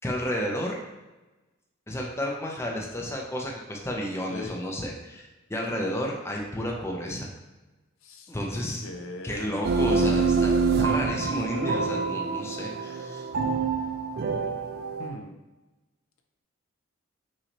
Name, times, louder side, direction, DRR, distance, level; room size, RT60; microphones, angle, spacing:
voice 1, 0.0-0.8 1.9-7.3 8.3-8.8 9.2-13.3, equal, 10° left, -1 dB, 0.5 m, -32 dB
voice 2, 8.0-9.7 11.5-11.9 15.0-15.3, left 2 dB, 85° left, 4 dB, 0.6 m, -40 dB
sound 1, 9.6-15.1, right 4 dB, 50° right, 0.3 m, -26 dB
5.8 x 2.7 x 3.0 m, 1.1 s
head